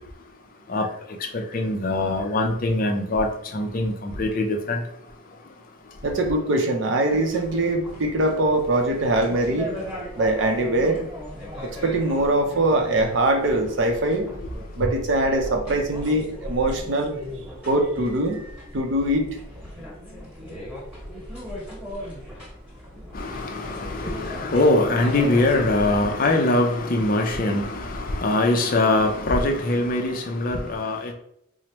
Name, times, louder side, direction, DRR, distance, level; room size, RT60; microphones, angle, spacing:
voice 1, 1.3-3.3 3.5-4.8 23.1-31.1, left 2 dB, 40° left, 3 dB, 0.5 m, -22 dB
voice 2, 6.0-9.7 10.2-11.0 11.6-14.3 14.8-17.1 17.7-18.4 18.7-19.4, right 1 dB, 65° right, 4 dB, 0.5 m, -22 dB
sound 1, 7.1-26.1, equal, 5° right, 1.4 m, -38 dB
4.6 x 2.0 x 2.9 m, 0.75 s
head